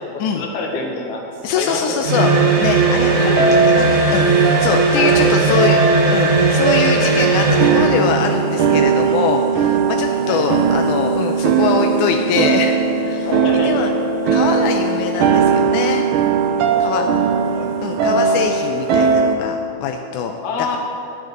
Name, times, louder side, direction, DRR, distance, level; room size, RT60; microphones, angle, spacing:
voice 1, 0.1-1.2 1.5-2.1 3.2-3.7 5.0-5.3 9.0-9.2 10.0-10.5 13.3-13.7 16.6-17.2 17.5-17.7 20.4-20.8, left 3 dB, 70° left, 0 dB, 3.0 m, -26 dB
voice 2, 1.4-2.3 2.6-5.8 6.1-13.3 13.6-13.9 14.3-16.1 16.8-17.1 17.8-20.4, left 7 dB, 90° left, 4 dB, 2.1 m, -23 dB
sound 1, 2.0-8.0, right 4 dB, 70° right, 0.6 m, -16 dB
sound 2, 2.3-3.0 3.4-4.1 4.4-5.2 5.6-6.3 6.6-7.1 7.6-19.3, right 5 dB, 90° right, 1.1 m, -19 dB
13.5 x 6.7 x 9.4 m, 2.8 s
omnidirectional pair, 3.5 m